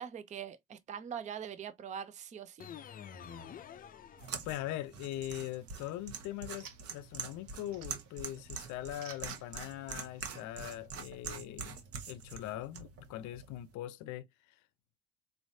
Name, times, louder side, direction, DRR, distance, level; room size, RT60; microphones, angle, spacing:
voice 1, 0.0-2.7, right 8 dB, 25° right, 0.5 m, -42 dB
sound 1, 2.6-4.9, left 8 dB, 30° left, 0.5 m, -49 dB
sound 2, 4.2-13.7, right 6 dB, 50° right, 1.1 m, -45 dB
voice 2, 4.4-11.8 12.1-14.3, left 14 dB, 70° left, 0.6 m, -41 dB
sound 3, 5.5-10.9, right 8 dB, 75° right, 1.2 m, -57 dB
4.1 x 3.3 x 2.7 m
cardioid pair, 150°, 31 cm